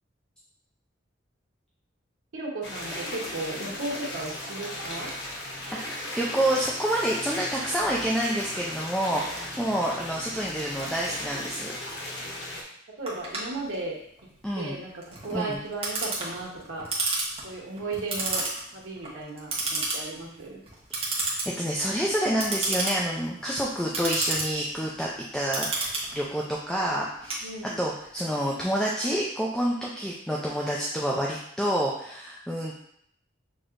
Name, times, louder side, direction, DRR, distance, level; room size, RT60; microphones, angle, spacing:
voice 1, 2.3-5.1 13.0-14.0 14.6-16.9 17.4-18.4 18.7-20.6 27.4-27.8, right 2 dB, 85° right, -3 dB, 1.1 m, -35 dB
sound 1, 2.6-12.6, left 1 dB, 60° left, 1.0 m, -36 dB
voice 2, 5.8-11.7 14.4-14.8 15.3-15.6 21.6-27.5 27.8-32.7, right 1 dB, 5° left, -4 dB, 0.4 m, -28 dB
Clock, 13.1-28.0, right 3 dB, 30° right, 1.1 m, -32 dB
6.1 x 2.9 x 2.5 m, 0.69 s
head